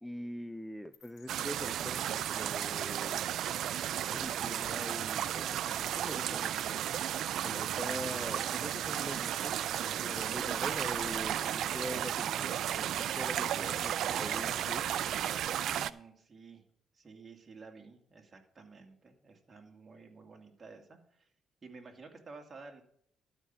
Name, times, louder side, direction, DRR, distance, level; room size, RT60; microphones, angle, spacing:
voice 1, 0.0-3.2 4.1-6.8 7.4-9.5 9.8-13.9 14.2-15.0, left 1 dB, 5° left, 12 dB, 0.4 m, -43 dB
sound 1, 0.9-15.4, left 5 dB, 80° left, 2.1 m, -61 dB
sound 2, 1.3-15.9, right 11 dB, 75° right, 0.4 m, -34 dB
voice 2, 14.0-14.4 15.5-16.6 16.9-21.3 21.6-22.8, right 4 dB, 35° right, 2 dB, 2.3 m, -51 dB
12.5 x 5.5 x 6.0 m, 0.63 s
cardioid pair, 90°, 0 cm